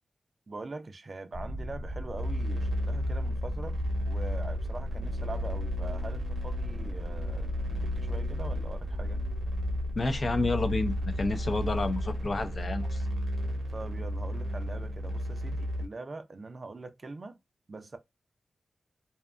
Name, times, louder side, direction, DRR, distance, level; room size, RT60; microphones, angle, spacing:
voice 1, 0.5-3.8 4.1-9.2 13.7-17.4 17.7-18.0, right 3 dB, 45° right, 0.4 m, -43 dB
sound 1, 1.3-14.3, equal, 10° left, 1.1 m, -38 dB
sound 2, 2.2-15.9, equal, 90° right, 0.7 m, -34 dB
voice 2, 10.0-13.0, left 3 dB, 50° left, 0.5 m, -30 dB
2.7 x 2.2 x 2.3 m
wide cardioid pair, 95°, 0 cm